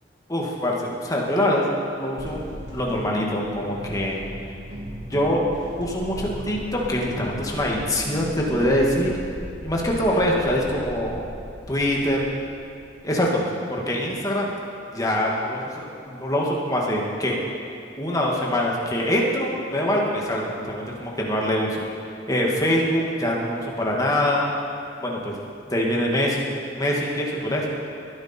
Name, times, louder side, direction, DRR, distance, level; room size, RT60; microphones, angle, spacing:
voice 1, 0.3-2.4 2.7-4.2 5.0-5.5 5.8-9.1 9.6-11.3 11.7-12.2 13.0-13.4 13.7-14.5 14.9-17.4 18.0-21.8 22.3-24.5 25.0-25.3 25.7-26.5 26.7-27.7, equal, 20° left, -2 dB, 1.9 m, -24 dB
sound 1, 2.2-8.8, right 1 dB, 90° right, 3.0 m, -37 dB
sound 2, 5.8-13.4, equal, ahead, 1.8 m, -40 dB
21.0 x 10.5 x 4.4 m, 2.5 s
head